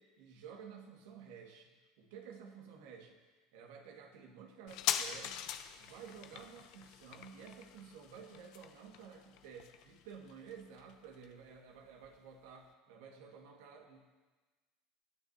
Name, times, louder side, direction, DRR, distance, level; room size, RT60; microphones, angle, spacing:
voice 1, 0.0-3.2 3.5-5.4 5.7-14.0, right 6 dB, 70° right, 2 dB, 2.0 m, -53 dB
sound 1, 4.7-11.8 12.0-12.1, left 11 dB, 60° left, 0.8 m, -42 dB
22.5 x 9.3 x 2.9 m, 1.3 s
hypercardioid pair, 75°, 0 cm